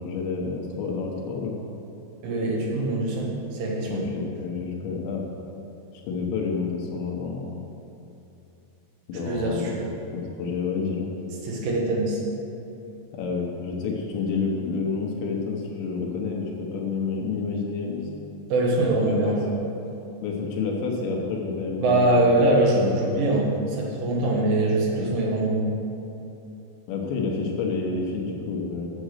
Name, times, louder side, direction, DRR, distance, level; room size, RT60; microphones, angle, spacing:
voice 1, 0.0-1.6 3.9-5.2 6.0-7.5 9.1-9.7 10.1-11.1 13.2-18.1 19.0-19.4 20.2-22.4 22.7-23.3 24.9-25.1 26.9-28.9, left 4 dB, 75° left, -1 dB, 3.0 m, -29 dB
voice 2, 2.2-4.1 9.3-9.9 11.4-12.2 18.5-19.5 21.8-25.7, right 2 dB, 80° right, -2 dB, 3.9 m, -23 dB
9.0 x 7.0 x 6.5 m, 2.8 s
omnidirectional pair, 5.7 m